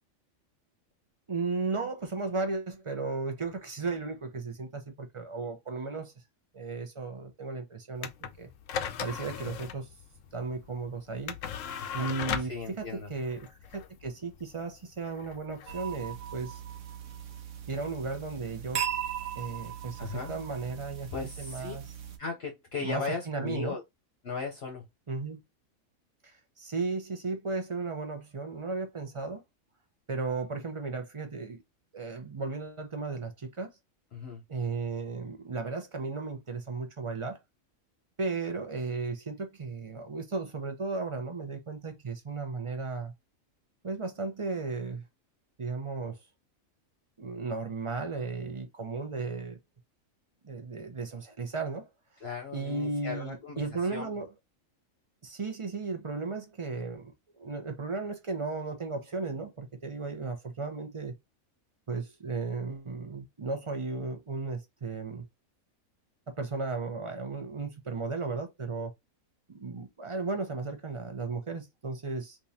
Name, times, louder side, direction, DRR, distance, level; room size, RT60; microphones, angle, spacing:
voice 1, 1.3-6.1 6.5-8.5 9.0-9.9 10.3-11.4 11.9-16.6 17.7-18.8 19.4-21.8 22.8-23.7 25.1-25.4 26.2-29.4 30.1-31.6 31.9-33.7 34.5-37.4 38.2-43.1 43.8-45.0 45.6-46.2 47.2-49.6 50.4-51.9 52.5-54.3 55.2-61.2 61.9-65.3 66.3-68.9 69.5-72.4, right 4 dB, 30° right, 0.7 m, -35 dB
sound 1, 8.0-16.4, left 8 dB, 70° left, 0.9 m, -39 dB
voice 2, 12.4-13.1 20.0-20.4 21.1-21.7 22.2-23.8 24.2-24.9 34.1-34.4 52.2-54.1 56.7-57.0, left 4 dB, 50° left, 1.1 m, -37 dB
sound 2, 15.7-22.2, right 9 dB, 65° right, 1.1 m, -38 dB
3.7 x 3.0 x 2.7 m
omnidirectional pair, 1.5 m